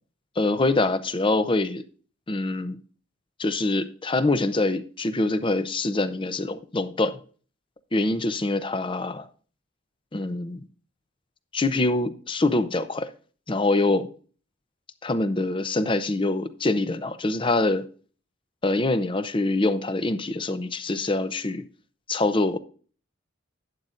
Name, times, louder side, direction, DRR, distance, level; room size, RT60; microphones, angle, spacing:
voice 1, 0.4-1.8 2.3-2.8 3.4-7.2 7.9-9.3 10.1-10.7 11.5-13.1 13.5-14.1 15.0-17.8 18.6-21.6 22.1-22.6, left 2 dB, 25° left, 11 dB, 0.7 m, -24 dB
11.5 x 9.5 x 2.5 m, 0.41 s
head